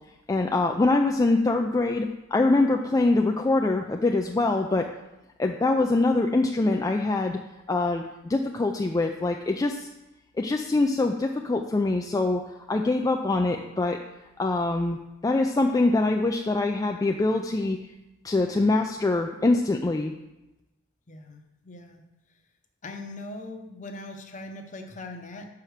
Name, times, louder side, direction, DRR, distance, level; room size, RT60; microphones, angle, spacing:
voice 1, 0.3-4.9 5.4-7.4 7.7-9.9 10.4-14.0 14.4-15.0 15.2-17.8 18.2-20.1, left 2 dB, 20° left, 3 dB, 0.3 m, -24 dB
voice 2, 21.1-22.1 22.8-25.5, left 2 dB, 40° left, 5 dB, 0.8 m, -40 dB
5.6 x 4.9 x 6.4 m, 0.96 s
head